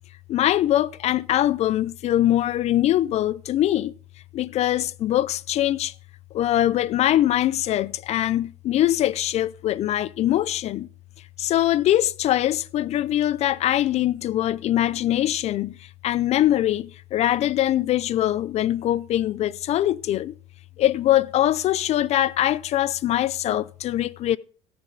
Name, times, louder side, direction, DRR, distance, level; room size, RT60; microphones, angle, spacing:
voice 1, 0.3-3.9 4.3-5.9 6.3-10.9 11.4-20.3 20.8-24.4, left 13 dB, 45° left, 0.4 m, -22 dB
17.5 x 6.7 x 3.8 m
supercardioid pair, 105°, 15 cm